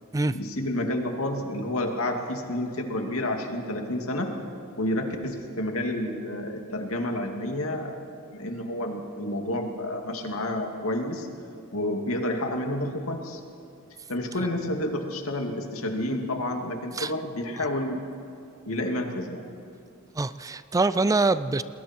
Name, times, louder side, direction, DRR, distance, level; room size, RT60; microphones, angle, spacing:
voice 1, 0.3-4.3 4.8-7.9 8.3-11.3 11.7-13.4 14.1-18.0 18.7-19.5, left 1 dB, 80° left, 3 dB, 2.4 m, -30 dB
voice 2, 20.2-21.6, right 3 dB, 15° right, 14 dB, 0.4 m, -24 dB
28.0 x 21.0 x 4.5 m, 2.6 s
head